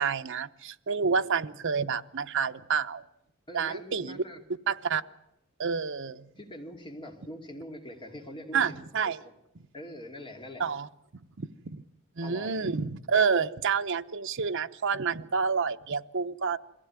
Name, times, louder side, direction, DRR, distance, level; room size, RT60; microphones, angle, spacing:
voice 1, 0.0-3.0 3.5-4.2 4.7-5.0 5.6-6.3 8.5-9.2 10.6-10.9 11.4-11.8 12.2-16.6, right 5 dB, 60° right, 9 dB, 0.8 m, -29 dB
voice 2, 3.5-4.4 6.4-8.8 9.0-9.3 9.7-10.7 12.2-12.7, equal, 25° left, 3 dB, 2.5 m, -43 dB
23.0 x 16.0 x 9.5 m, 0.90 s
head